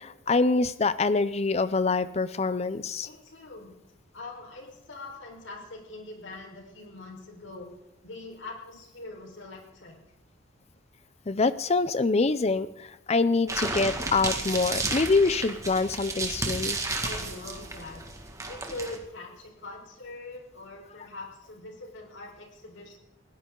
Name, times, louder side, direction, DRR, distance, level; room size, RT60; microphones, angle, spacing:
voice 1, 0.0-3.1 11.3-16.8, left 3 dB, 35° left, 15 dB, 0.5 m, -25 dB
voice 2, 3.0-3.7 4.1-7.7 8.0-10.0 16.8-18.0 18.5-23.0, left 2 dB, 75° left, 1 dB, 4.6 m, -42 dB
sound 1, 13.5-19.0, right 3 dB, 15° right, 2.0 m, -32 dB
20.5 x 17.0 x 3.8 m, 0.85 s
head